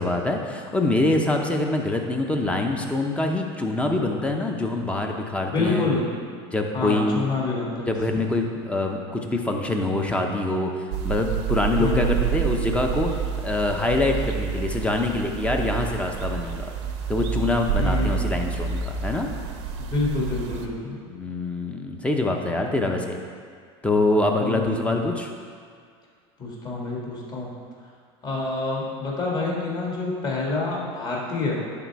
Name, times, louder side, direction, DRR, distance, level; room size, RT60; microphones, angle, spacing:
voice 1, 0.0-5.9 6.5-7.4 7.9-13.1 13.4-16.7 17.1-19.3 21.1-23.2 23.8-25.3, left 2 dB, 10° left, 2 dB, 0.7 m, -25 dB
voice 2, 5.4-6.1 6.7-7.9 11.8-12.3 17.8-18.3 19.8-21.0 22.5-22.9 24.4-25.1 26.4-27.5 28.2-31.6, left 3 dB, 30° left, -3 dB, 1.9 m, -27 dB
sound 1, 10.9-20.7, right 7 dB, 85° right, 0.8 m, -28 dB
10.5 x 4.2 x 4.7 m, 2.1 s
supercardioid pair, 125°, 14 cm